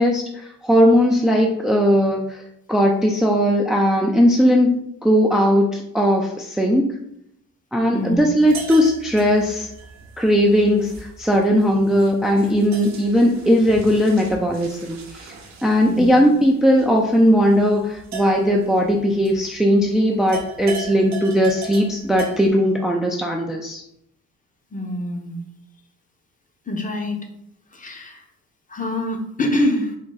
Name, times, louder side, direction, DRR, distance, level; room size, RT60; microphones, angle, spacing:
voice 1, 0.0-2.4 2.7-4.7 5.0-6.9 7.7-9.7 10.2-15.3 15.6-23.8, equal, ahead, 0 dB, 0.4 m, -18 dB
voice 2, 7.9-8.3 15.9-16.1 24.7-25.4 26.7-27.3 27.7-28.2 28.7-30.0, left 1 dB, 25° left, 3 dB, 0.7 m, -25 dB
sound 1, 8.4-19.8 20.1-22.5, right 4 dB, 65° right, 0.8 m, -38 dB
3.7 x 2.2 x 3.9 m, 0.76 s
cardioid pair, 90°, 30 cm